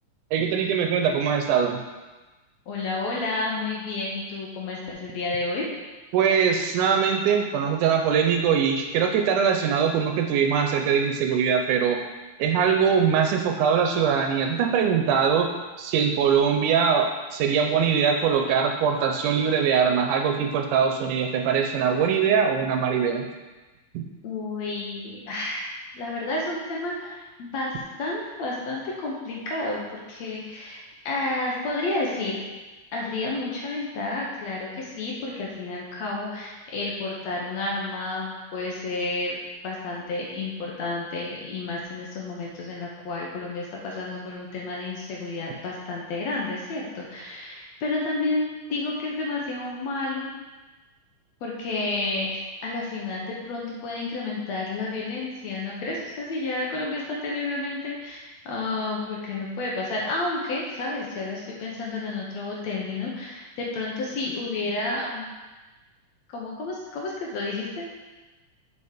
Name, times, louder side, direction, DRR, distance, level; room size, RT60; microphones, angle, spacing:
voice 1, 0.3-1.8 6.1-12.0 12.4-15.5 15.8-23.3 23.9-24.1, right 7 dB, 85° right, 4 dB, 2.1 m, -22 dB
voice 2, 2.7-5.7 24.2-25.7 25.9-27.7 28.0-32.4 32.9-39.4 39.6-50.3 51.4-65.3 66.3-67.9, left 2 dB, 65° left, -3 dB, 2.1 m, -31 dB
7.0 x 5.0 x 5.0 m, 1.2 s
omnidirectional pair, 3.6 m